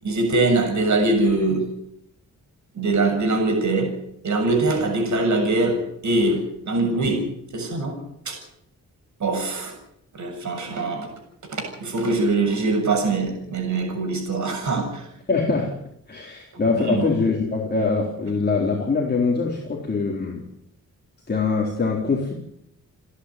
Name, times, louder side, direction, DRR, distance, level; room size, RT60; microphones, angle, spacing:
voice 1, 0.0-1.7 2.7-3.9 4.2-7.2 7.5-7.9 8.3-8.4 9.2-9.7 10.1-11.1 11.5-15.1 16.7-17.1, right 2 dB, 60° right, 3 dB, 7.3 m, -23 dB
voice 2, 15.3-15.8 16.1-20.5 21.3-22.3, left 4 dB, 30° left, -2 dB, 4.0 m, -23 dB
30.0 x 10.5 x 9.6 m, 0.75 s
wide cardioid pair, 135°, 33 cm